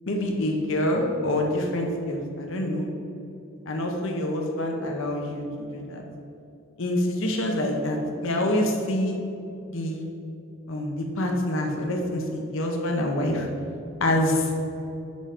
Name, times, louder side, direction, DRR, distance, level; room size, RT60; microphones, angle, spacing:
voice 1, 0.1-2.9 3.7-6.0 6.8-9.2 9.7-10.1 10.7-13.5 14.0-14.5, left 1 dB, 70° left, 2 dB, 0.8 m, -26 dB
5.6 x 5.3 x 5.0 m, 2.7 s
head